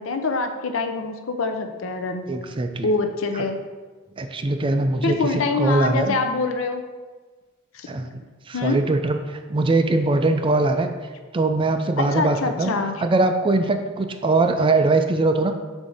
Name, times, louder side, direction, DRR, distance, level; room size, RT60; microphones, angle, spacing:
voice 1, 0.0-2.3 2.8-3.6 5.0-6.8 7.7-7.9 8.5-8.8 12.0-13.0, left 3 dB, 85° left, 6 dB, 0.6 m, -25 dB
voice 2, 2.3-2.9 4.2-6.2 7.9-8.2 8.5-10.9 11.3-12.7 13.0-15.5, right 2 dB, 25° right, 6 dB, 0.4 m, -21 dB
7.0 x 2.7 x 4.9 m, 1.3 s
head